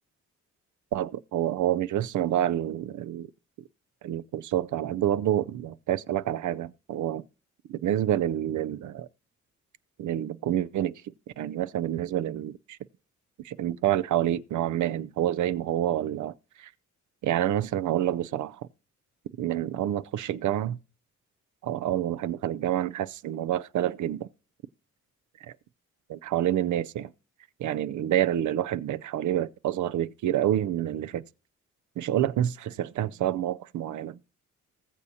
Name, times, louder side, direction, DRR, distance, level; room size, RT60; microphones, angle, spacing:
voice 1, 0.9-3.3 4.0-7.2 7.7-9.1 10.0-11.0 11.4-12.8 13.4-16.7 17.2-18.7 19.4-20.8 21.6-24.3 26.1-27.1 27.6-31.3 32.0-34.2, right 11 dB, 75° right, 0.5 m, -28 dB
19.5 x 7.0 x 2.7 m
cardioid pair, 65°, 30 cm